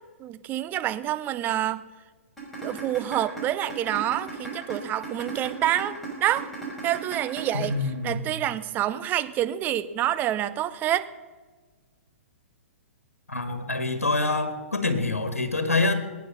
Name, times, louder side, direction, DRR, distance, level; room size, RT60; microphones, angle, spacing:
voice 1, 0.2-1.8 2.6-6.5 6.8-11.1, right 12 dB, 25° right, 13 dB, 0.7 m, -27 dB
sound 1, 2.4-8.4, right 1 dB, 5° left, 6.0 m, -38 dB
voice 2, 7.5-8.2 13.3-15.9, left 3 dB, 85° left, 8 dB, 1.8 m, -26 dB
20.0 x 9.3 x 5.5 m, 1.4 s
figure-of-eight pair, 120°, 8 cm